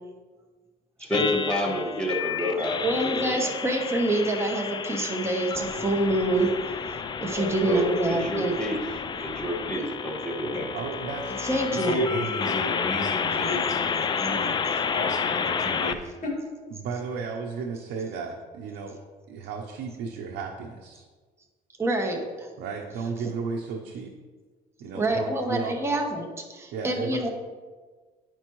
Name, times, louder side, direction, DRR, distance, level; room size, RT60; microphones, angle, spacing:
sound 1, 1.1-15.9, left 6 dB, 25° left, 0.4 m, -30 dB
voice 1, 1.1-3.5 7.3-8.8 9.2-10.7, left 1 dB, 5° left, -2 dB, 1.5 m, -29 dB
voice 2, 2.8-6.5 7.2-8.6 11.4-12.0 21.8-22.5 24.9-27.3, right 2 dB, 15° right, 2 dB, 0.9 m, -26 dB
voice 3, 10.7-11.3 11.7-11.8 16.7-19.0 19.3-21.1 22.6-24.1 24.8-25.8 26.7-27.3, right 5 dB, 80° right, 1 dB, 0.7 m, -34 dB
voice 4, 11.8-14.6 14.9-16.3, left 1 dB, 45° left, -1 dB, 2.1 m, -32 dB
10.5 x 4.5 x 3.1 m, 1.4 s
cardioid pair, 110°, 17 cm